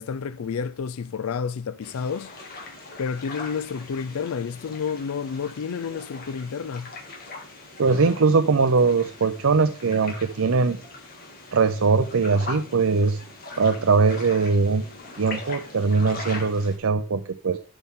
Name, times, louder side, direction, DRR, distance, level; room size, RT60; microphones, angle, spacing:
voice 1, 0.0-2.3 3.0-6.9, left 6 dB, 80° left, 0.4 m, -30 dB
sound 1, 1.8-16.8, left 3 dB, 40° left, 2.4 m, -41 dB
voice 2, 7.8-10.8 11.5-13.2 13.6-14.8 15.2-17.6, right 4 dB, 70° right, 0.6 m, -21 dB
12.0 x 5.6 x 3.7 m
head